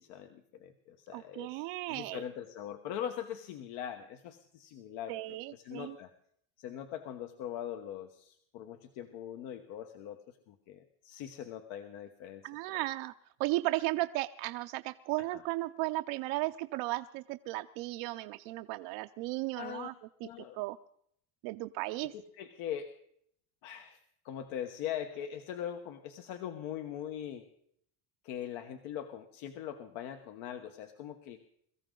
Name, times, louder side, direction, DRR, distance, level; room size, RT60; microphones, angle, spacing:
voice 1, 0.0-6.1 6.6-12.4 15.2-15.4 19.6-19.9 20.2-20.6 22.0-22.9 23.6-24.0 24.2-27.5 28.2-31.4, left 10 dB, 75° left, 7 dB, 1.3 m, -41 dB
voice 2, 1.1-2.2 5.1-6.0 12.4-13.1 13.4-19.9 20.5-20.8 21.4-22.1, right 19 dB, 70° right, 8 dB, 0.7 m, -35 dB
22.5 x 14.0 x 3.8 m, 0.70 s
cardioid pair, 140°, 49 cm